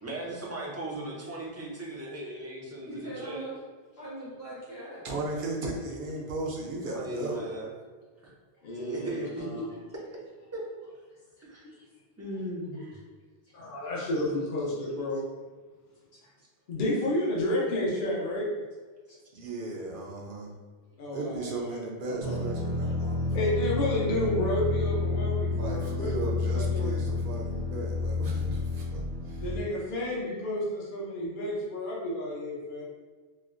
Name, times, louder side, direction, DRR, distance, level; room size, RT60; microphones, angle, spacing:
voice 1, 0.0-3.5 6.8-7.7 8.2-8.3 8.7-9.5 10.5-10.6 11.4-11.6 12.2-12.7, right 1 dB, 20° right, -4 dB, 0.4 m, -37 dB
voice 2, 2.8-3.6 4.0-5.1 8.6-8.7 11.5-11.9 12.7-12.9 16.2-16.3, right 1 dB, 75° left, -9 dB, 1.4 m, -42 dB
voice 3, 5.0-7.4 19.3-20.5 21.1-23.5 25.5-29.4, right 2 dB, 60° right, -2 dB, 0.7 m, -36 dB
voice 4, 8.6-9.7 12.8-12.9 13.5-15.2 16.7-18.5 21.0-22.4 22.8-22.9 23.3-27.0 29.4-32.8, left 1 dB, 55° left, -5 dB, 0.8 m, -31 dB
sound 1, 22.2-29.6, left 3 dB, 80° right, 1.0 m, -30 dB
4.3 x 2.0 x 2.4 m, 1.4 s
omnidirectional pair, 1.1 m